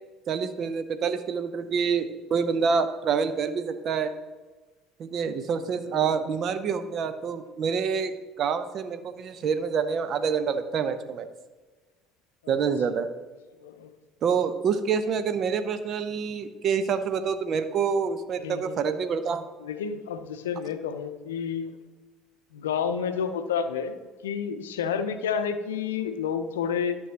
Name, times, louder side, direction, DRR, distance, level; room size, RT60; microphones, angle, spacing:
voice 1, 0.3-4.1 5.0-11.3 12.5-13.1 14.2-19.4, right 6 dB, 50° right, 11 dB, 0.6 m, -27 dB
voice 2, 5.6-6.1 12.4-12.6 13.6-13.9 18.4-18.9 19.6-21.8 22.5-27.0, left 7 dB, 80° left, 9 dB, 0.5 m, -30 dB
12.0 x 6.2 x 2.8 m, 1.3 s
hypercardioid pair, 60°, 0 cm